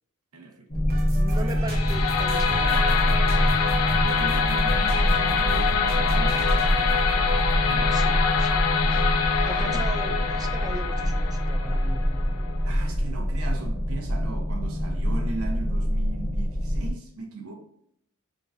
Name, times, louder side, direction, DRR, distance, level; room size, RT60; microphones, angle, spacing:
voice 1, 0.3-1.6 3.6-8.0 8.8-9.9 12.7-17.5, right 3 dB, 75° right, 1.0 m, -39 dB
sound 1, 0.7-16.9, equal, 25° left, 0.8 m, -25 dB
sound 2, 0.9-8.7, right 1 dB, 45° right, 1.2 m, -39 dB
voice 2, 1.2-3.0 7.9-8.7 9.4-12.0, right 2 dB, 15° right, 0.4 m, -38 dB
sound 3, 1.7-12.7, left 6 dB, 85° left, 0.5 m, -26 dB
4.9 x 3.8 x 2.5 m
head